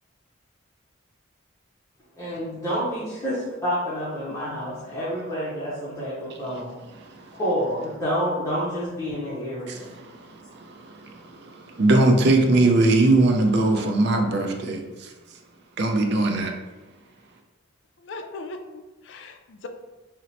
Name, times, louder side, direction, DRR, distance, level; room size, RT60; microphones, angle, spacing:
voice 1, 2.2-6.7 7.4-9.9, equal, 15° left, 0.7 m, -28 dB
voice 2, 7.0-7.4 9.7-15.1 15.8-16.5, right 2 dB, 55° right, 0.4 m, -21 dB
voice 3, 18.0-19.7, left 3 dB, 60° left, 0.3 m, -39 dB
2.9 x 2.1 x 3.9 m
head